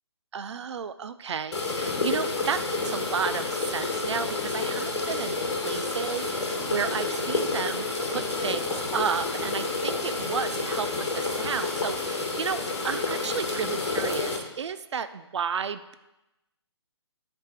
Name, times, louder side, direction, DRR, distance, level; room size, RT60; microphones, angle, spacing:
voice 1, 0.3-5.4 5.6-15.9, right 6 dB, 75° right, 13 dB, 0.4 m, -32 dB
sound 1, 1.5-14.4, left 3 dB, 65° left, 1.7 m, -29 dB
8.7 x 3.4 x 4.5 m, 0.96 s
hypercardioid pair, 155°, 15 cm